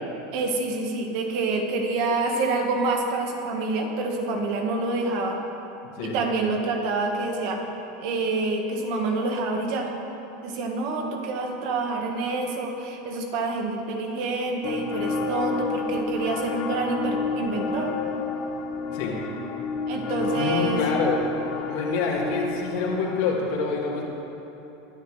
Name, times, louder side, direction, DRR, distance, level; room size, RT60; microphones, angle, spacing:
voice 1, 0.3-5.4 6.0-7.6 8.0-9.9 10.4-17.9 19.9-20.8, right 3 dB, 50° right, 2 dB, 1.7 m, -27 dB
sound 1, 14.6-23.2, left 4 dB, 40° left, 1.3 m, -30 dB
voice 2, 20.4-21.2 21.7-24.0, left 4 dB, 60° left, -3 dB, 2.8 m, -26 dB
23.0 x 10.0 x 3.4 m, 3.0 s
supercardioid pair, 160°, 0 cm